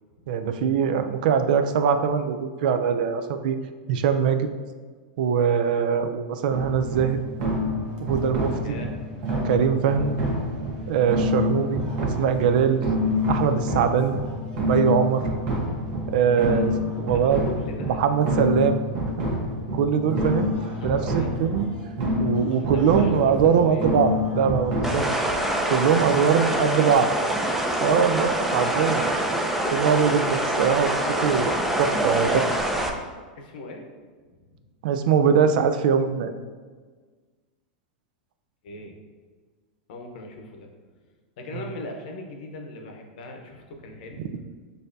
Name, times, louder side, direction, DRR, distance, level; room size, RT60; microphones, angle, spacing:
voice 1, 0.3-3.6 3.9-4.5 5.2-7.2 8.0-8.8 9.4-10.2 10.9-12.8 13.3-14.2 14.7-15.2 16.1-16.7 17.0-17.5 18.0-18.8 19.7-20.6 20.8-21.7 22.2-25.1 25.7-27.1 27.8-29.2 29.7-31.5 31.8-32.5 34.8-36.3 44.2-44.3, right 7 dB, 65° right, 9 dB, 0.4 m, -22 dB
sound 1, 6.5-25.1, left 1 dB, 50° right, 1.1 m, -27 dB
voice 2, 8.6-8.9 16.4-16.6 17.0-18.0 20.8-21.3 22.5-23.9 26.8-27.3 33.4-33.9 38.6-39.0 39.9-40.7 41.4-44.3, left 2 dB, 65° left, 3 dB, 0.8 m, -39 dB
sound 2, 24.8-32.9, right 1 dB, 5° right, 0.4 m, -25 dB
6.4 x 2.7 x 2.6 m, 1.5 s
hypercardioid pair, 120°, 5 cm